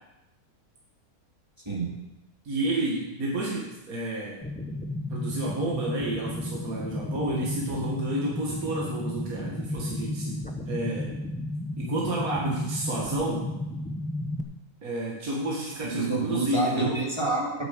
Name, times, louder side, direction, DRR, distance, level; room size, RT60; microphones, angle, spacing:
voice 1, 1.7-2.0 15.8-17.6, right 3 dB, 20° right, -2 dB, 2.2 m, -28 dB
voice 2, 2.4-4.4 5.1-10.4 10.7-11.1 11.8-13.5 14.8-17.0, right 1 dB, 70° right, -3 dB, 2.3 m, -30 dB
sound 1, 4.4-14.4, left 1 dB, 10° left, 0.6 m, -33 dB
9.8 x 8.4 x 7.2 m, 0.94 s
omnidirectional pair, 1.6 m